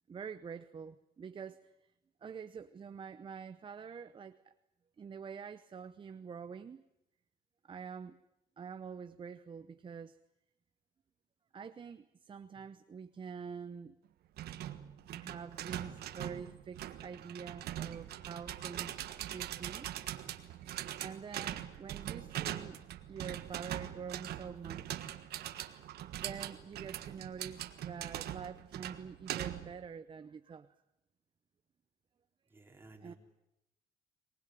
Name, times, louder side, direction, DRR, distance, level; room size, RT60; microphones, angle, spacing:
voice 1, 0.1-1.6 2.2-4.5 5.0-6.8 7.6-8.2 8.6-10.2 11.5-14.0 15.1-19.9 21.0-22.8 23.1-25.1 26.2-30.7 33.0-33.1, right 6 dB, 30° right, 11 dB, 0.8 m, -46 dB
sound 1, 14.4-29.8, right 12 dB, 70° right, 1.5 m, -42 dB
voice 2, 22.0-22.4 32.5-33.2, right 2 dB, 15° right, 3 dB, 3.5 m, -58 dB
24.5 x 19.5 x 9.2 m, 0.87 s
cardioid pair, 110°, 17 cm